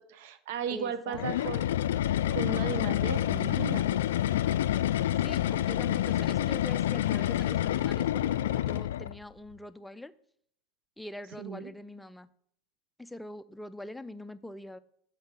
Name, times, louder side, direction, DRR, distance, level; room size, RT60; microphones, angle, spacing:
voice 1, 0.1-1.6 2.3-4.0 11.4-11.7, right 7 dB, 60° right, 11 dB, 0.8 m, -36 dB
voice 2, 0.7-1.6 5.2-10.1 11.0-12.3 13.0-14.8, left 1 dB, 5° left, 14 dB, 0.4 m, -43 dB
sound 1, 1.1-9.2, left 12 dB, 70° left, 0.3 m, -28 dB
8.0 x 4.4 x 6.4 m, 0.68 s
hypercardioid pair, 85°, 0 cm